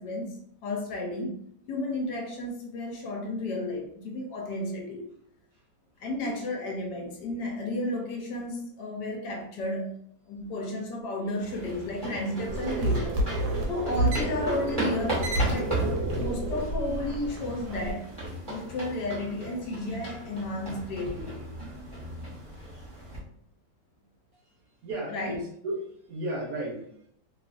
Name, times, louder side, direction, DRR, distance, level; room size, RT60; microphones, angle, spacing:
voice 1, 0.0-1.4 1.7-5.1 6.0-9.9 10.3-13.2 13.7-18.1 18.5-21.5 25.1-25.4, left 1 dB, 75° left, 1 dB, 1.1 m, -33 dB
sound 1, 11.4-23.2, right 1 dB, 20° right, 0.7 m, -35 dB
voice 2, 11.8-12.2 13.4-13.8 16.1-16.2 21.6-21.7 24.8-27.1, right 1 dB, 65° right, -3 dB, 1.0 m, -36 dB
sound 2, 12.5-17.9, right 1 dB, 90° right, 1.4 m, -30 dB
3.0 x 2.4 x 2.4 m, 0.67 s
omnidirectional pair, 2.0 m